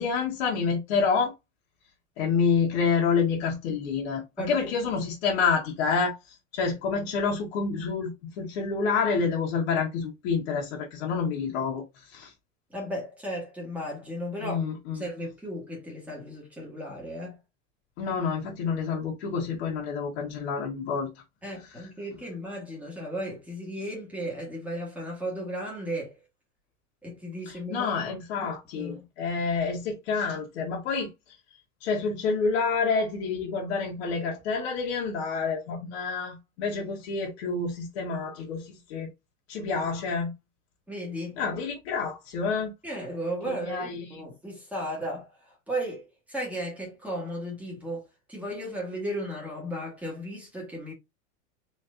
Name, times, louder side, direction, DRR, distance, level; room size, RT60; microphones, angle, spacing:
voice 1, 0.0-1.3 2.2-6.2 6.5-11.8 12.1-12.3 14.4-15.0 18.0-21.1 27.5-31.1 31.8-38.6 38.9-39.1 39.5-40.3 41.4-42.7 43.4-44.2, left 5 dB, 60° left, 1.5 m, -28 dB
voice 2, 4.4-4.7 12.7-14.6 14.9-17.4 21.4-26.2 27.0-27.9 28.3-28.5 28.7-29.1 40.9-41.4 42.8-48.0 48.3-50.9, equal, 5° right, 1.6 m, -35 dB
4.3 x 3.1 x 2.6 m
supercardioid pair, 160°, 36 cm